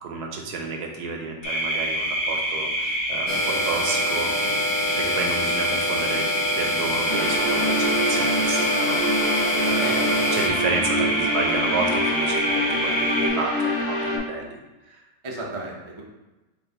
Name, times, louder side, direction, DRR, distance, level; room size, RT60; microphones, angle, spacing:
voice 1, 0.0-4.7 5.0-6.3 6.6-14.6 14.9-15.0 15.4-15.5, right 4 dB, 75° right, 2 dB, 1.2 m, -31 dB
sound 1, 1.4-13.3, right 1 dB, 50° left, 1.5 m, -26 dB
sound 2, 3.3-10.5, left 2 dB, 75° left, 1.3 m, -28 dB
sound 3, 7.1-14.2, equal, 30° left, 1.1 m, -25 dB
voice 2, 9.8-10.4 15.2-16.0, right 1 dB, 35° right, -2 dB, 0.4 m, -33 dB
4.6 x 2.9 x 3.8 m, 1.1 s
omnidirectional pair, 1.8 m